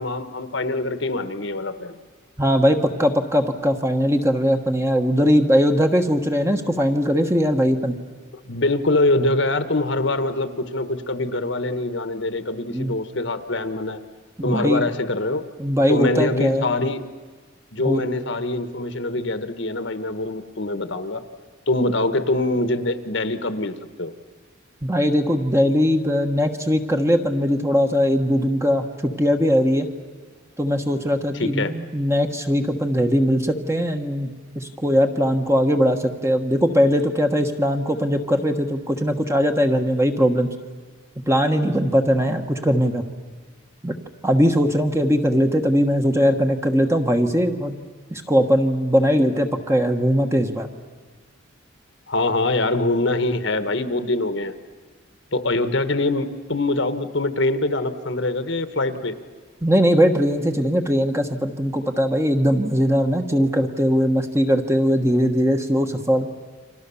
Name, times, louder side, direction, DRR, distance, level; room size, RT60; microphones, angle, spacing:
voice 1, 0.0-2.0 8.3-14.0 14.4-15.5 15.9-17.0 17.7-21.2 21.7-24.1 31.3-31.7 52.1-54.5 55.3-59.2, left 2 dB, 60° left, 11 dB, 1.3 m, -24 dB
voice 2, 2.4-7.9 12.7-12.9 14.4-14.9 15.6-16.7 17.8-18.0 24.8-29.9 30.6-40.5 41.3-43.0 43.8-44.0 44.2-47.8 48.1-50.7 59.6-66.3, equal, 15° right, 5 dB, 1.3 m, -20 dB
29.5 x 25.0 x 7.1 m, 1.4 s
head